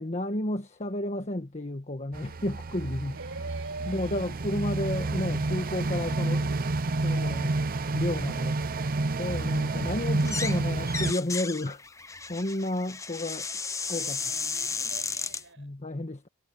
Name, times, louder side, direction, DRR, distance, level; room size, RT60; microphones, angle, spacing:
voice 1, 0.0-3.2 3.9-6.6 7.0-7.6 7.9-8.6 9.2-13.5 13.9-14.2 15.6-16.3, left 1 dB, 30° left, 1.4 m, -32 dB
sound 1, 2.1-11.1, right 2 dB, 40° right, 0.6 m, -29 dB
voice 2, 3.1-4.4 8.7-8.9 13.8-15.8, right 3 dB, 60° right, 6.9 m, -44 dB
sound 2, 10.2-10.6 10.9-15.4, left 5 dB, 15° left, 0.7 m, -34 dB
head